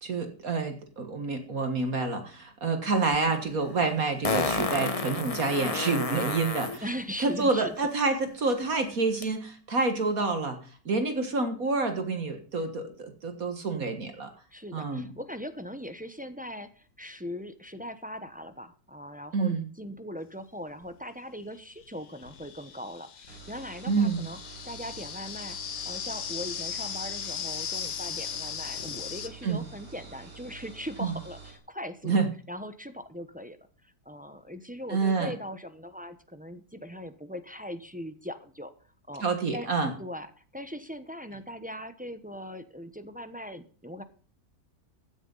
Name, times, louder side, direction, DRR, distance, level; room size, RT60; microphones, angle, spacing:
voice 1, 0.0-6.8 7.2-10.6 10.9-14.3 14.7-15.1 19.3-19.7 23.9-24.3 29.4-29.6 31.0-31.1 32.0-32.3 34.9-35.3 39.2-39.9, right 3 dB, 55° right, 7 dB, 2.0 m, -28 dB
Fart, 3.1-3.2 4.2-6.8 9.2-9.3, left 3 dB, 25° left, 0.9 m, -30 dB
voice 2, 6.8-7.7 14.5-24.4 24.6-25.6 25.8-32.1 32.5-33.6 33.8-38.7 39.1-39.2 39.5-39.7 40.0-40.3 40.5-44.0, equal, 10° right, 9 dB, 0.6 m, -40 dB
sound 1, 20.8-20.9 21.8-29.3, left 8 dB, 80° left, 1.8 m, -37 dB
sound 2, 23.3-31.6, right 4 dB, 75° right, 4.1 m, -48 dB
16.0 x 10.0 x 4.0 m, 0.41 s
omnidirectional pair, 1.8 m